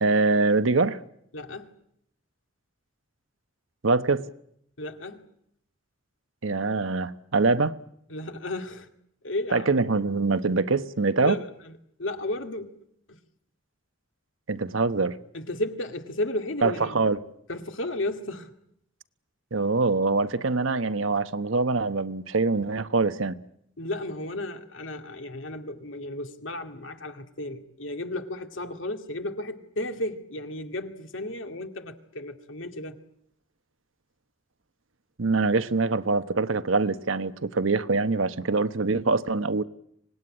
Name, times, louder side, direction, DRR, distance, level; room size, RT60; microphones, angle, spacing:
voice 1, 0.0-1.0 3.8-4.2 6.4-7.7 9.5-11.4 14.5-15.2 16.6-17.2 19.5-23.3 35.2-39.6, right 3 dB, 85° right, 1.1 m, -24 dB
voice 2, 1.3-1.7 4.8-5.3 8.1-8.9 9.2-9.8 11.2-12.8 13.1-13.2 15.3-17.0 17.5-18.5 20.4-20.5 23.8-33.0, left 1 dB, 75° left, 2.2 m, -34 dB
25.5 x 19.0 x 9.9 m
head